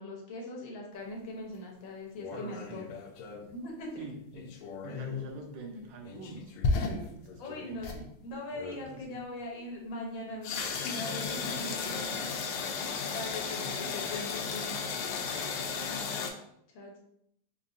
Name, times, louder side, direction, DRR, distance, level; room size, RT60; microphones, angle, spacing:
voice 1, 0.0-2.8 3.5-3.9 7.4-12.3 12.6-14.8 16.7-17.0, left 1 dB, 70° left, -1 dB, 1.6 m, -41 dB
sound 1, 2.2-3.5 4.3-5.3 6.0-8.0 8.5-8.9 10.4-16.3, left 4 dB, 85° left, 1.5 m, -35 dB
voice 2, 2.3-2.9 4.0-4.5 4.8-8.1 8.7-9.3 10.9-11.6 13.5-14.0 14.5-14.6 15.4-16.1, right 2 dB, 70° right, 2 dB, 1.2 m, -46 dB
4.6 x 2.6 x 2.5 m, 0.75 s
omnidirectional pair, 2.4 m